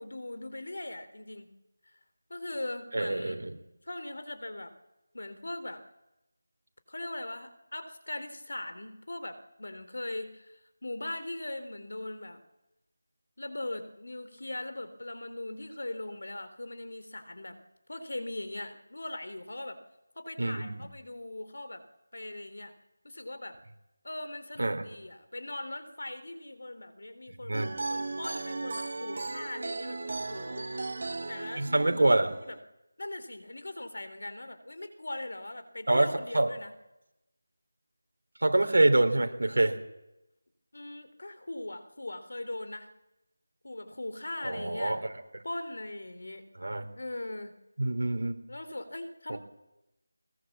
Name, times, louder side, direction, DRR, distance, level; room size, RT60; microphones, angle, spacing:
voice 1, 0.0-1.5 2.3-3.4 3.9-4.7 5.1-5.8 6.9-12.4 13.4-17.6 17.9-19.8 20.2-21.8 22.1-22.7 23.0-23.6 24.0-30.7 31.3-31.7 31.9-32.1 32.5-32.6 33.0-36.7 40.7-42.9 43.6-45.0 45.4-46.5 47.0-47.5 48.5-49.4, left 1 dB, 75° left, 11 dB, 3.6 m, -40 dB
voice 2, 2.9-3.5 20.4-20.8 24.6-24.8 27.4-27.7 31.6-32.3 35.9-36.1 36.3-36.5 38.4-39.8 44.4-45.0 46.6-46.8 47.8-48.3 49.3-49.4, right 2 dB, 70° right, 6 dB, 3.5 m, -25 dB
sound 1, 27.5-32.6, right 3 dB, 45° right, 1.3 m, -36 dB
21.0 x 21.0 x 7.3 m, 0.93 s
figure-of-eight pair, 175°, 0 cm